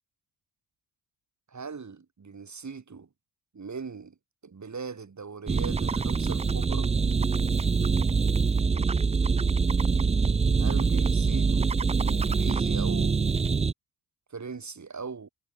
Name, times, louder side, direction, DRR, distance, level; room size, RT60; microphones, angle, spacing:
voice 1, 1.5-3.1 3.5-4.1 4.4-6.9 10.6-11.7 12.0-13.2 14.3-15.3, right 5 dB, 45° right, 8.0 m, -40 dB
sound 1, 5.5-13.7, right 5 dB, 15° right, 0.4 m, -24 dB
cardioid pair, 70°, 41 cm